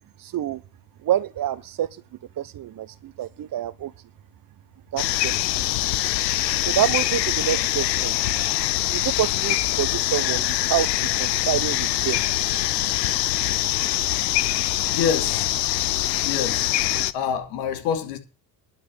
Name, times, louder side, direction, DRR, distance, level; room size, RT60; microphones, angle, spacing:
voice 1, 0.2-0.6 1.0-1.9 2.4-3.9 4.9-5.7 6.6-8.1 8.9-12.2, right 12 dB, 45° right, 1.2 m, -27 dB
sound 1, 5.0-17.1, left 15 dB, 90° left, 0.8 m, -24 dB
voice 2, 14.7-15.5 16.2-16.7 17.1-18.2, left 8 dB, 70° left, 2.8 m, -27 dB
11.5 x 6.2 x 8.6 m
hypercardioid pair, 70°, 48 cm